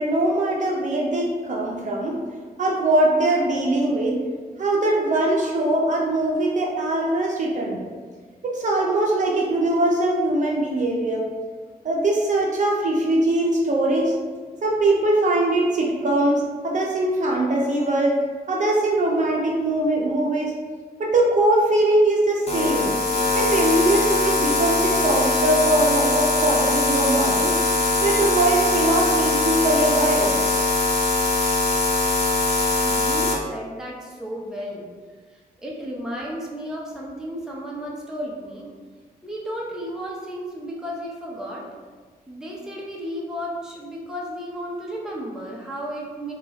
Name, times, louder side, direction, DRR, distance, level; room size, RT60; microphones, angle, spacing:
voice 1, 0.0-2.2 2.6-4.2 4.6-7.9 8.4-11.3 11.8-14.1 14.6-18.2 18.5-20.5 21.0-22.9 23.3-27.6 28.0-30.3, right 1 dB, 50° right, -2 dB, 0.6 m, -21 dB
sound 1, 22.5-33.3, left 2 dB, 40° left, 0.7 m, -21 dB
voice 2, 32.8-34.9 35.3-38.7 39.2-41.7 42.3-46.3, equal, 5° right, -4 dB, 0.6 m, -33 dB
3.0 x 2.3 x 3.9 m, 1.5 s
wide cardioid pair, 115°, 16 cm